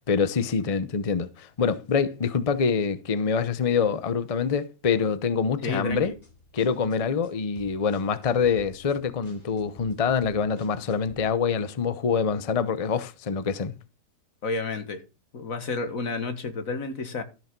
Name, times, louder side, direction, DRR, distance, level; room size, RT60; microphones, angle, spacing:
voice 1, 0.1-6.1 6.5-13.7, left 6 dB, 70° left, 0.3 m, -25 dB
voice 2, 5.6-6.1 14.4-15.0 15.3-17.2, left 3 dB, 50° left, 1.9 m, -30 dB
sound 1, 5.9-11.2, left 1 dB, 20° left, 2.7 m, -51 dB
13.5 x 6.3 x 5.3 m
omnidirectional pair, 2.0 m